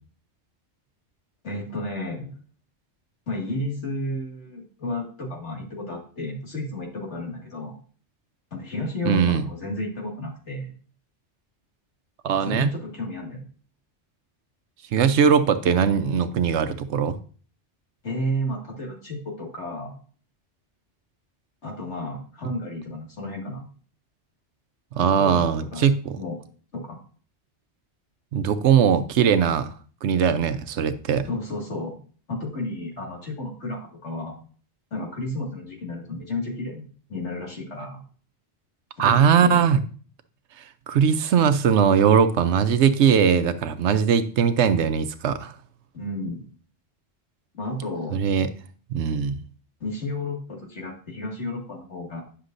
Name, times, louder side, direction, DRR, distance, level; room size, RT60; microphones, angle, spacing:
voice 1, 1.4-2.3 3.3-7.8 8.5-10.7 12.4-13.4 18.0-19.9 21.6-23.7 25.0-25.9 26.2-26.4 26.7-27.0 31.3-32.0 32.3-34.4 34.9-38.0 39.0-39.7 45.9-46.4 47.6-48.2 49.8-52.2, left 1 dB, 75° left, -1 dB, 2.3 m, -32 dB
voice 2, 9.0-9.4 12.2-12.7 14.9-17.2 24.9-26.2 28.3-29.7 30.0-31.3 39.0-39.8 40.9-45.5 48.1-48.5 48.9-49.4, right 7 dB, 80° right, 12 dB, 1.0 m, -20 dB
9.6 x 6.6 x 2.6 m, 0.42 s
omnidirectional pair, 1.2 m